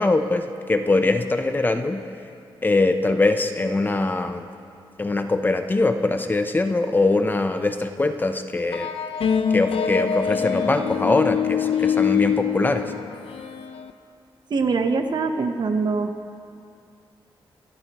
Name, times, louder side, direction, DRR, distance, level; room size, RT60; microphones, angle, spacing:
voice 1, 0.0-2.0 2.6-4.5 5.0-8.9 9.5-12.9, left 2 dB, 20° left, 7 dB, 0.6 m, -22 dB
sound 1, 8.7-13.9, left 7 dB, 90° left, 0.7 m, -24 dB
voice 2, 14.5-16.1, right 4 dB, 50° right, 6 dB, 0.9 m, -23 dB
27.0 x 13.5 x 3.0 m, 2.4 s
wide cardioid pair, 170°, 9 cm